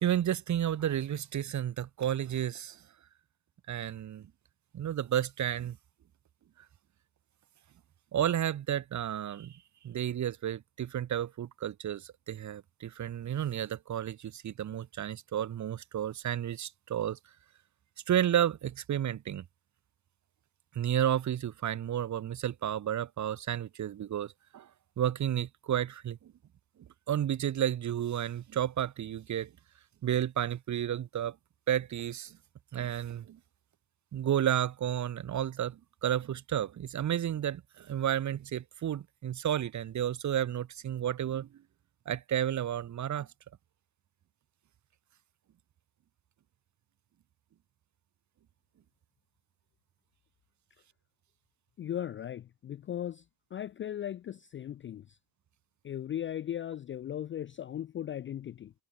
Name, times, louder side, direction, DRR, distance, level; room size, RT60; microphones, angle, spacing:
voice 1, 0.0-2.8 3.7-4.3 4.7-5.8 8.1-9.6 9.8-17.2 18.1-19.4 20.7-24.7 25.0-26.3 27.1-29.5 30.0-31.3 31.7-32.4 32.7-33.4 34.1-41.5 42.0-43.3, right 10 dB, 35° right, 1.6 m, -32 dB
voice 2, 51.8-53.2 53.5-55.2 55.8-58.7, left 10 dB, 25° left, 0.5 m, -37 dB
cardioid pair, 130°, 50 cm